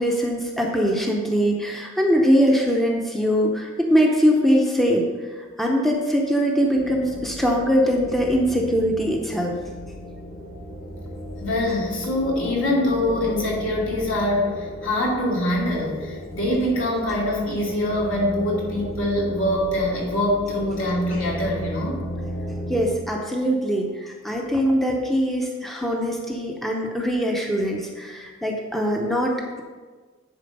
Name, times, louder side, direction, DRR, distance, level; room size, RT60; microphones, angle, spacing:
voice 1, 0.0-5.1 5.6-9.5 22.7-29.6, equal, ahead, -1 dB, 0.7 m, -22 dB
sound 1, 6.8-23.0, equal, 35° left, 1.4 m, -35 dB
voice 2, 11.4-22.0, left 1 dB, 70° left, -5 dB, 2.7 m, -24 dB
10.5 x 4.3 x 5.3 m, 1.4 s
head